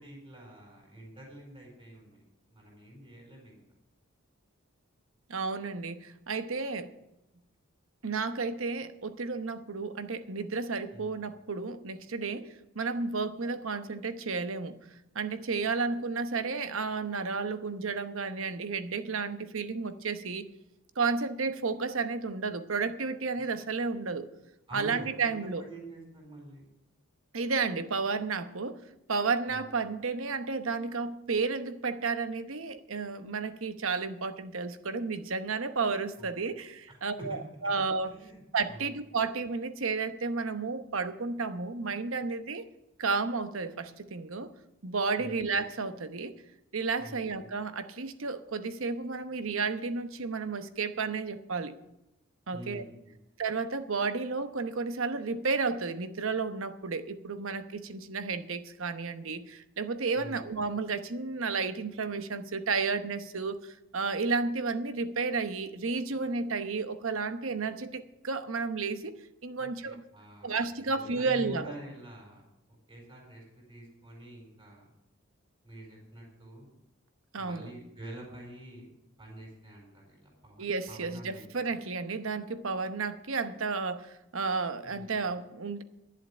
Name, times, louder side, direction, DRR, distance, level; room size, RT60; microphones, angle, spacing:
voice 1, 0.0-3.6 10.9-11.2 24.7-26.7 29.5-29.7 36.2-36.3 36.9-37.4 38.0-38.4 38.7-38.9 45.2-45.4 47.0-47.2 52.5-53.2 60.1-60.4 69.6-72.4 72.9-74.9 75.6-76.7 77.3-78.9 79.2-81.7 84.8-85.1, right 1 dB, 25° right, -2 dB, 4.7 m, -47 dB
voice 2, 5.3-6.9 8.0-14.8 15.1-20.5 21.0-24.3 24.7-25.6 27.3-28.8 29.1-38.1 38.5-42.6 43.0-44.5 44.8-46.3 46.7-51.7 52.5-52.8 53.4-69.1 69.4-70.0 70.4-71.7 77.3-77.7 80.6-85.8, right 4 dB, 70° right, 10 dB, 0.9 m, -32 dB
11.0 x 7.7 x 8.7 m, 0.89 s
head